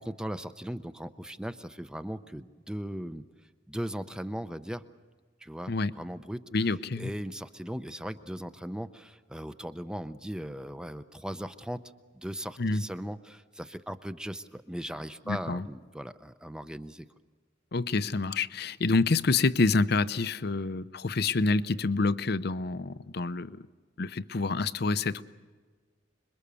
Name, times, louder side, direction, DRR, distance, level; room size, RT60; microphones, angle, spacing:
voice 1, 0.0-3.2 3.7-4.8 5.4-11.8 12.1-17.1, equal, 5° right, 0.6 m, -38 dB
voice 2, 6.5-7.1 12.6-12.8 15.3-15.7 17.7-23.6 24.0-25.2, left 3 dB, 55° left, 0.7 m, -27 dB
26.5 x 22.5 x 7.0 m
head